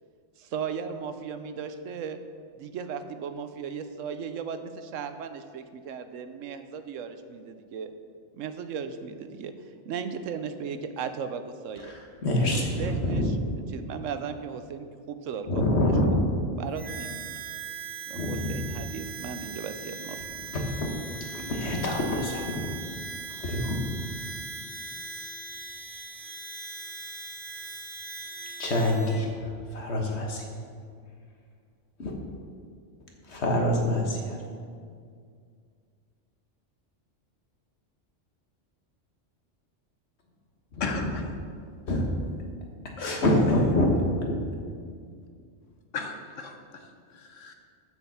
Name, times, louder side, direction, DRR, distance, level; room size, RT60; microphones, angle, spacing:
voice 1, 0.4-2.2 2.5-7.9 8.3-9.5 9.8-11.9 12.4-13.4 13.7-15.9 16.6-17.3 18.1-20.4, right 6 dB, 90° right, 9 dB, 1.0 m, -36 dB
voice 2, 11.8-13.4 15.5-16.2 18.1-18.7 20.8-20.9 21.3-22.7 23.3-23.8 28.6-30.4 32.0-32.1 33.3-34.4 40.7-41.1 41.9-42.0 43.0-43.9, left 1 dB, 60° left, 1 dB, 1.6 m, -26 dB
Harmonica, 16.7-29.2, right 5 dB, 70° right, 1.9 m, -40 dB
voice 3, 40.8-41.3 43.0-43.2 45.9-47.5, left 4 dB, 80° left, 5 dB, 1.3 m, -36 dB
6.9 x 6.5 x 7.1 m, 2.2 s
omnidirectional pair, 1.3 m